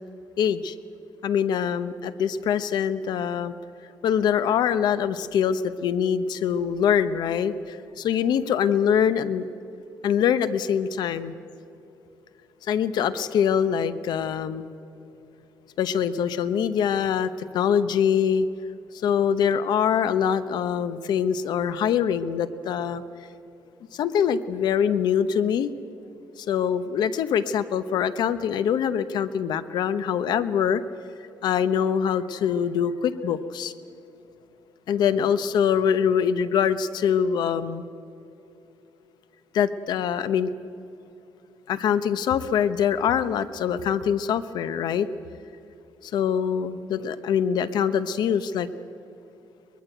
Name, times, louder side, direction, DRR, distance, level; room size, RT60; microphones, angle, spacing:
voice 1, 0.4-0.7 1.2-3.5 4.0-9.5 10.0-11.3 12.6-14.7 15.8-18.5 19.0-23.0 23.9-25.7 26.4-30.8 31.4-33.7 34.9-37.9 39.5-40.5 41.7-45.1 46.0-48.7, left 8 dB, 75° left, 12 dB, 1.0 m, -24 dB
23.0 x 20.5 x 8.0 m, 2.9 s
cardioid pair, 120°, 7 cm